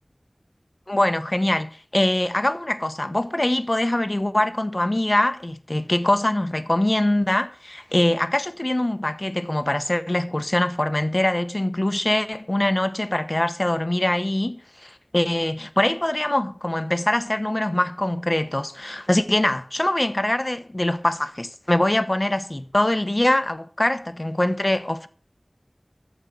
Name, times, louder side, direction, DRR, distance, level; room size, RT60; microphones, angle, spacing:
voice 1, 0.9-25.1, left 1 dB, 35° left, 1.1 m, -23 dB
14.0 x 5.4 x 9.4 m
wide cardioid pair, 45°, 0 cm